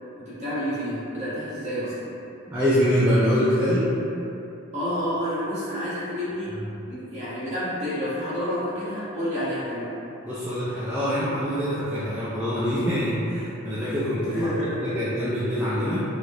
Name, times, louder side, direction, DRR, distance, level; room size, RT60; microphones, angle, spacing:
voice 1, 0.3-1.9 4.7-6.5 6.9-9.9 14.3-14.9, equal, 30° right, -13 dB, 1.2 m, -29 dB
voice 2, 2.5-3.8 10.2-14.7 14.9-16.0, equal, 10° right, -12 dB, 0.4 m, -24 dB
4.3 x 2.0 x 2.9 m, 2.9 s
head